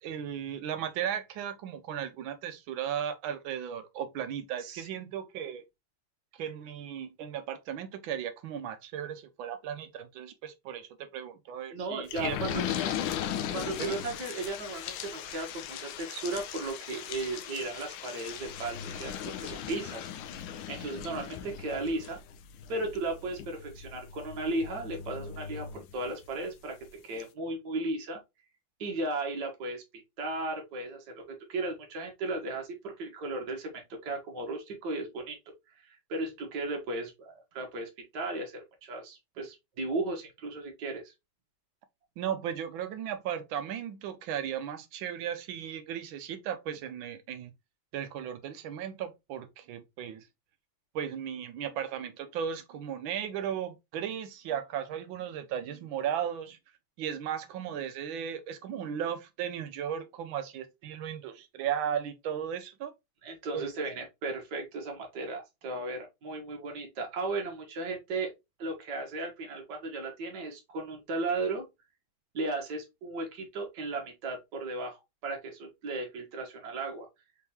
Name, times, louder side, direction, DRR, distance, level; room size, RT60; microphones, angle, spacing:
voice 1, 0.0-5.6 6.4-12.6 13.8-14.0 42.2-47.5 47.9-50.2 50.9-56.6 57.0-62.9 63.5-63.9, right 9 dB, 80° right, 1.5 m, -36 dB
voice 2, 11.7-12.6 13.5-20.1 20.7-22.2 22.7-26.8 27.0-28.2 28.8-29.8 30.2-35.4 35.8-41.1 63.2-68.3 68.6-71.6 72.3-77.1, right 2 dB, 60° right, 1.7 m, -35 dB
sound 1, 12.1-26.4 26.8-26.9 27.2-27.3, left 9 dB, 80° left, 1.3 m, -38 dB
4.5 x 3.6 x 2.8 m
omnidirectional pair, 2.1 m